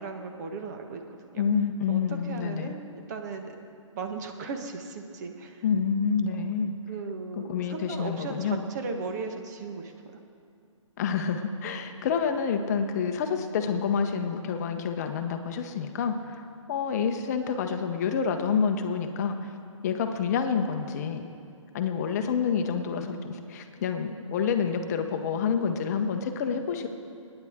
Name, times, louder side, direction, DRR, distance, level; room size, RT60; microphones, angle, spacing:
voice 1, 0.0-1.4 1.9-2.8 3.1-3.6 3.9-5.6 6.9-9.9, right 4 dB, 35° right, 4 dB, 1.2 m, -37 dB
voice 2, 1.4-2.7 5.6-6.7 7.3-8.7 11.0-19.5 19.8-21.2 21.7-26.9, left 6 dB, 30° left, 6 dB, 0.9 m, -28 dB
24.5 x 10.0 x 3.6 m, 2.4 s
hypercardioid pair, 155°, 17 cm